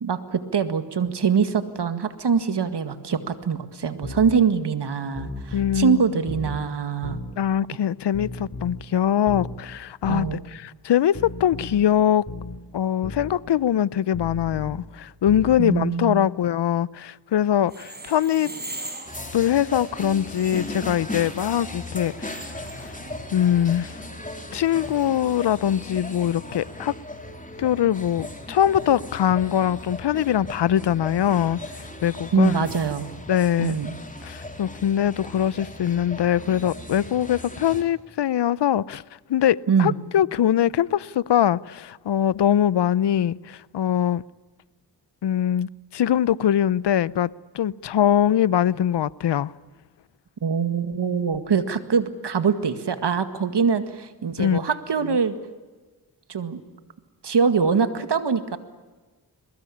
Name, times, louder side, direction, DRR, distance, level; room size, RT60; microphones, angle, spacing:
voice 1, 0.0-7.2 10.1-10.4 15.6-16.2 32.3-33.1 33.6-33.9 39.7-40.0 50.4-55.3 56.3-56.6 57.2-58.6, right 6 dB, 75° right, 2.0 m, -23 dB
sound 1, 4.0-4.4 5.1-5.9 6.3-6.6 7.0-7.4 8.1-8.9 9.3-9.6 10.0-10.4 11.2-11.8 12.3-12.6 13.0-13.3 14.1-14.8 15.3-15.6, left 2 dB, 45° left, 3.2 m, -35 dB
voice 2, 5.5-6.0 7.4-12.3 12.7-18.5 19.3-22.5 22.8-22.9 23.3-23.9 24.5-26.9 27.6-31.6 32.0-32.5 33.3-33.8 34.2-39.0 39.3-44.2 45.2-47.3 47.5-49.5 54.4-54.6 55.0-55.2, left 10 dB, 80° left, 0.7 m, -22 dB
sound 2, 17.6-24.1, right 2 dB, 25° right, 6.2 m, -41 dB
sound 3, 19.1-37.8, left 2 dB, 20° left, 3.9 m, -37 dB
22.5 x 21.5 x 8.7 m
cardioid pair, 45°, 41 cm